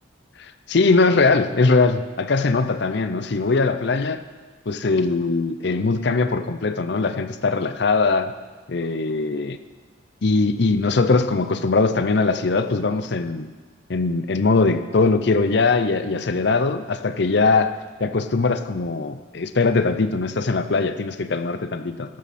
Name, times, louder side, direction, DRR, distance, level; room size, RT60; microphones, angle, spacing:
voice 1, 0.4-4.2 4.7-8.3 8.7-9.6 10.2-13.5 13.9-22.2, left 3 dB, 60° left, 10 dB, 0.6 m, -21 dB
15.5 x 12.5 x 4.3 m, 1.4 s
head